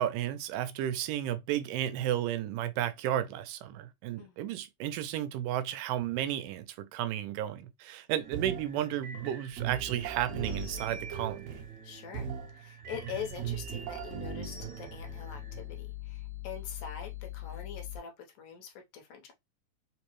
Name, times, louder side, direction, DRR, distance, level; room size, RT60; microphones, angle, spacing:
voice 1, 0.0-11.5, right 12 dB, 85° right, 2.1 m, -33 dB
sound 1, 8.2-18.0, right 3 dB, 65° right, 1.8 m, -39 dB
voice 2, 11.8-19.3, left 7 dB, 75° left, 2.3 m, -44 dB
5.2 x 2.0 x 3.0 m
omnidirectional pair, 3.7 m